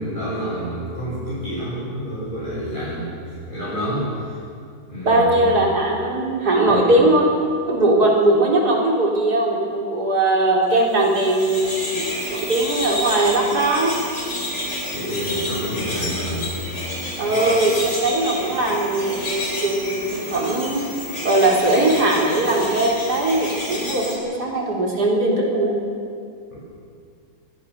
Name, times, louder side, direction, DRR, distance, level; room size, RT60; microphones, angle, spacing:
voice 1, 0.0-4.4 4.9-5.6 6.7-6.9 14.9-16.5 17.3-17.7 26.5-26.6, equal, 25° left, -11 dB, 7.8 m, -28 dB
voice 2, 5.0-7.3 7.7-13.9 17.2-20.8 21.2-25.7, right 2 dB, 60° right, -1 dB, 4.3 m, -20 dB
sound 1, 10.9-24.2, left 1 dB, 55° left, 5.8 m, -30 dB
24.5 x 22.0 x 6.5 m, 2.3 s
omnidirectional pair, 2.0 m